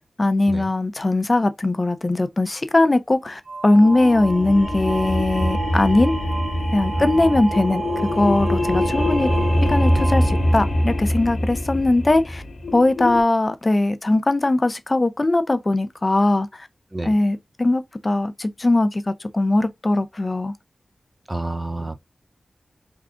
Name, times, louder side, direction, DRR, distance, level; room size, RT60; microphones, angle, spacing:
voice 1, 0.2-6.1 6.7-7.8 8.1-9.3 9.6-12.4 12.7-16.7 17.0-20.5, left 2 dB, 35° left, 0.5 m, -20 dB
sound 1, 3.5-11.0, right 4 dB, 70° right, 0.7 m, -32 dB
sound 2, 3.8-13.2, left 1 dB, 80° left, 0.9 m, -23 dB
voice 2, 7.0-7.3 16.9-17.1 21.3-22.0, right 2 dB, 20° right, 0.5 m, -29 dB
3.6 x 2.3 x 3.8 m
wide cardioid pair, 65°, 0 cm